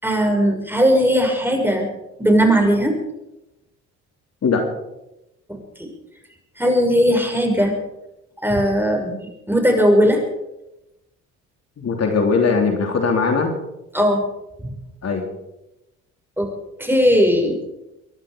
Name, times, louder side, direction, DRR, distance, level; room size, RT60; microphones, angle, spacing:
voice 1, 0.0-1.9 2.2-3.0 5.5-5.9 6.6-7.7 8.4-9.2 9.5-10.2 13.9-14.2 16.4-16.5 16.8-17.6, equal, 5° right, 3 dB, 6.1 m, -18 dB
voice 2, 11.8-13.5 15.0-15.2, left 4 dB, 50° left, 3 dB, 3.0 m, -19 dB
24.5 x 11.5 x 5.2 m, 0.92 s
supercardioid pair, 65°, 34 cm